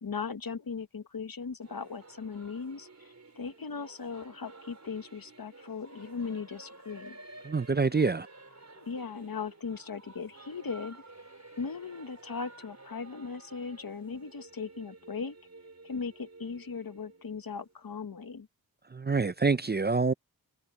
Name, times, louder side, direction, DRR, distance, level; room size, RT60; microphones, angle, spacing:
voice 1, 0.0-7.2 8.7-11.0 11.6-15.4 15.8-18.5, left 5 dB, 65° left, 1.3 m, -38 dB
Singing / Musical instrument, 1.6-17.9, right 2 dB, 45° right, 4.4 m, -52 dB
voice 2, 7.5-8.3 18.9-20.1, right 4 dB, 25° right, 0.5 m, -26 dB
wide cardioid pair, 65°, 37 cm